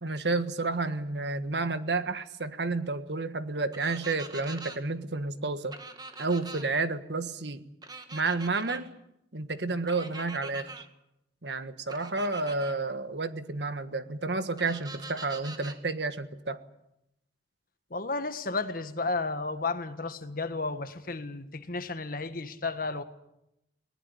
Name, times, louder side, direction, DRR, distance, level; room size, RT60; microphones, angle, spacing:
voice 1, 0.0-5.8 6.2-7.7 8.1-8.9 9.3-10.8 11.4-16.6, right 3 dB, 70° right, 11 dB, 1.5 m, -31 dB
sound 1, 3.7-4.8 5.7-6.6 7.8-8.8 9.9-10.8 11.9-12.7 14.6-15.8, right 3 dB, 25° right, 2.1 m, -43 dB
voice 2, 17.9-23.0, left 3 dB, 50° left, 10 dB, 1.6 m, -33 dB
20.5 x 19.5 x 9.9 m, 0.83 s
head